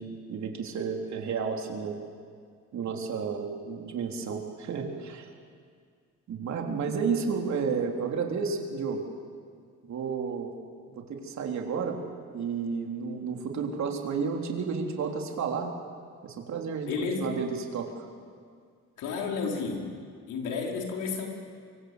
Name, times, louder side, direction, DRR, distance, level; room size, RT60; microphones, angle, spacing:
voice 1, 0.0-2.0 2.7-5.3 6.3-9.0 9.8-10.5 10.9-12.0 12.3-15.7 16.2-16.9 17.2-17.9, right 5 dB, 65° right, 2 dB, 3.8 m, -31 dB
voice 2, 16.9-17.4 19.0-19.9 20.3-21.3, left 5 dB, 85° left, 0 dB, 4.8 m, -31 dB
25.0 x 24.0 x 8.2 m, 2.1 s
cardioid pair, 90°, 30 cm